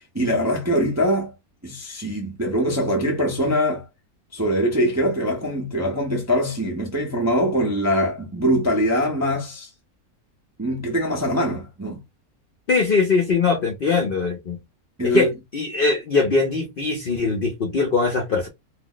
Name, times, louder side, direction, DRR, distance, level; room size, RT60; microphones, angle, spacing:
voice 1, 0.1-1.3 1.6-3.8 4.3-9.7 10.6-12.0 15.0-15.3, equal, 20° right, 0.4 m, -22 dB
voice 2, 12.7-14.6 15.0-15.3 15.5-18.5, left 4 dB, 55° left, 0.6 m, -21 dB
2.6 x 2.1 x 3.7 m
omnidirectional pair, 1.6 m